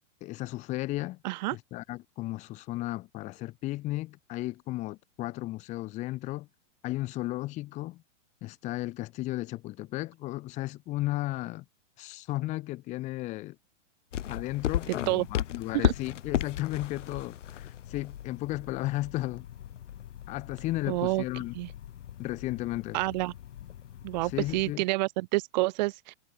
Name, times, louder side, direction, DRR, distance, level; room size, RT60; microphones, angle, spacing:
voice 1, 0.2-1.2 1.5-6.5 6.8-8.0 8.4-11.6 12.0-13.6 14.3-19.5 20.3-21.5 22.2-23.0 24.2-24.8, left 18 dB, 20° left, 1.1 m, -34 dB
voice 2, 1.2-1.6 15.1-15.3 15.7-15.9 20.9-21.2 21.5-21.7 22.9-23.3 24.0-26.1, right 22 dB, 35° right, 1.4 m, -28 dB
sound 1, 14.1-24.8, left 11 dB, 70° left, 7.0 m, -36 dB
hypercardioid pair, 160°, 39 cm